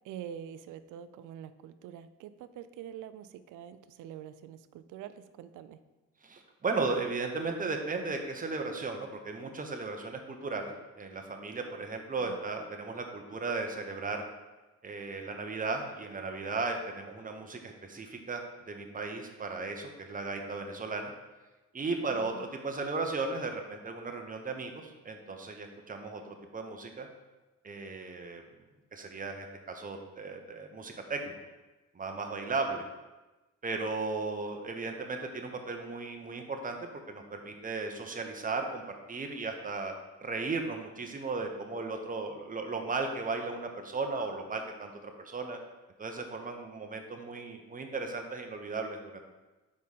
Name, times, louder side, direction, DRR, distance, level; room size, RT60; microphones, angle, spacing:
voice 1, 0.0-5.8 12.2-12.4 22.1-22.5, right 9 dB, 85° right, 13 dB, 0.5 m, -45 dB
voice 2, 6.2-14.2 14.8-21.1 21.7-27.1 27.6-28.4 28.9-31.4 31.9-32.8 33.6-39.9 40.2-45.6 46.0-49.2, right 3 dB, 25° right, 4 dB, 0.9 m, -36 dB
4.9 x 4.4 x 5.5 m, 1.1 s
cardioid pair, 90°, 30 cm